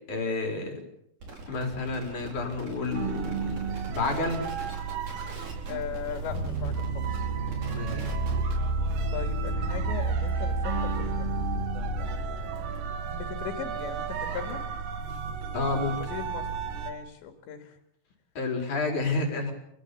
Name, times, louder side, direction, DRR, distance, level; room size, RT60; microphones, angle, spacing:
voice 1, 0.1-0.7 1.5-4.5 7.7-8.1 15.5-16.0 18.4-19.5, left 3 dB, 45° left, 3 dB, 5.4 m, -30 dB
sound 1, 1.2-8.7, right 3 dB, 45° right, 6.1 m, -44 dB
sound 2, 2.9-16.9, right 7 dB, 75° right, 4.0 m, -34 dB
voice 2, 5.7-7.3 9.1-11.3 12.0-14.6 16.0-17.8, left 9 dB, 85° left, 5 dB, 4.4 m, -39 dB
sound 3, 6.3-13.4, right 2 dB, 20° left, 3.8 m, -31 dB
29.5 x 14.5 x 8.4 m, 0.75 s
omnidirectional pair, 5.0 m